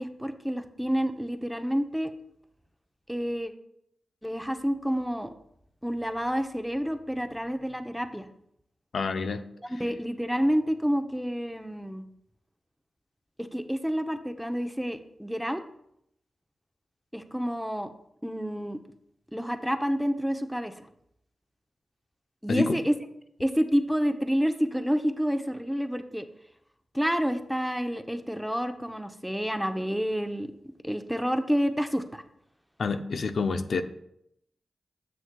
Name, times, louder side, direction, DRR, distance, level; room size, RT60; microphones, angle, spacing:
voice 1, 0.0-2.1 3.1-3.5 4.2-5.3 5.8-8.3 9.7-12.0 13.4-15.6 17.1-17.9 18.2-18.8 19.3-20.7 22.4-22.9 23.4-26.3 26.9-30.5 30.8-32.2, equal, ahead, 7 dB, 0.7 m, -29 dB
voice 2, 8.9-9.4 22.5-22.8 32.8-33.8, left 4 dB, 70° left, 8 dB, 0.5 m, -28 dB
9.2 x 7.0 x 2.2 m, 0.76 s
cardioid pair, 50°, 0 cm